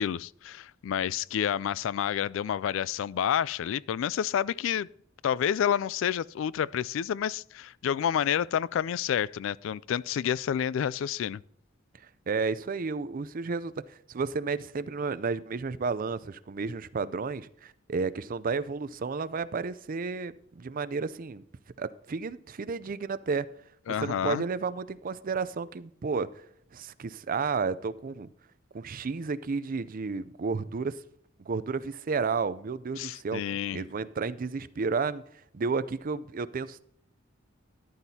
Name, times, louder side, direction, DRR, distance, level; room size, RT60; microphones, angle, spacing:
voice 1, 0.0-4.9 5.2-11.4 23.9-24.4 33.0-33.8, left 9 dB, 70° left, 0.3 m, -29 dB
voice 2, 12.3-21.4 21.8-23.5 23.9-26.4 26.7-28.3 28.7-31.0 31.4-33.4 33.7-35.2 35.5-36.9, right 4 dB, 45° right, 0.5 m, -32 dB
13.0 x 11.5 x 2.8 m
head